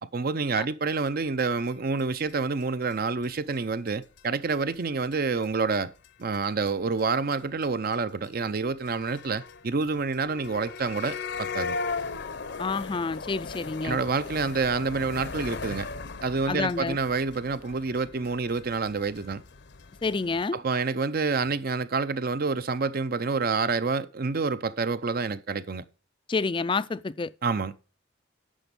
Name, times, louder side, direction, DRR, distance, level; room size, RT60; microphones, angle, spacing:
voice 1, 0.0-5.9 6.2-11.8 13.8-15.9 16.2-19.4 20.5-25.8 27.4-27.8, right 4 dB, 45° right, 0.6 m, -28 dB
sound 1, 1.4-1.5 1.7-1.8 2.0-2.1 2.3-2.4 2.6-2.7 2.9-3.0 3.2-3.6 3.9-4.0 4.2-4.3 4.5-4.7 5.1-5.2 5.4-6.1 6.3-6.7 7.0-7.1 7.3-7.4 7.6-7.7 7.9-8.0 8.2-8.3 8.6-20.4, left 4 dB, 55° left, 0.7 m, -38 dB
voice 2, 12.6-14.0 16.5-17.0 20.0-20.6 26.3-27.3, left 4 dB, 25° left, 0.4 m, -28 dB
10.0 x 6.2 x 5.3 m
head